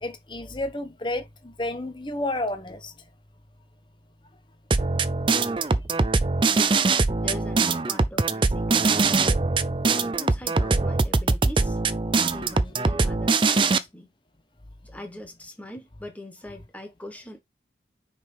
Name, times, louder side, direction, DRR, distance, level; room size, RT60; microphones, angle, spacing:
voice 1, 0.0-2.9, left 1 dB, 25° left, 1.0 m, -31 dB
sound 1, 4.7-13.8, right 3 dB, 30° right, 0.5 m, -22 dB
voice 2, 6.4-6.8 7.2-9.1 9.8-11.8 12.3-14.1 14.8-17.4, left 1 dB, 10° left, 1.4 m, -42 dB
6.1 x 5.1 x 3.5 m
head